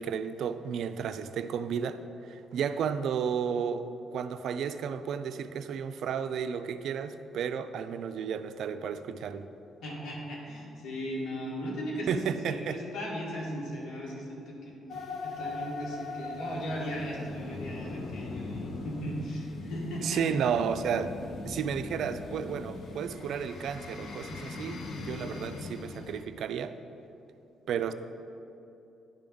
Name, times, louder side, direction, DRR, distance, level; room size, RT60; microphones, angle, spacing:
voice 1, 0.0-3.8 4.1-9.5 12.1-12.8 20.0-21.1 21.4-26.7 27.7-27.9, right 7 dB, 70° right, 11 dB, 0.3 m, -32 dB
voice 2, 9.8-14.7 15.2-20.2 27.7-27.8, equal, 75° left, -3 dB, 1.8 m, -37 dB
sound 1, 14.9-26.2, left 3 dB, 60° left, 0.8 m, -40 dB
10.5 x 3.6 x 5.3 m, 2.9 s
cardioid pair, 90°, 0 cm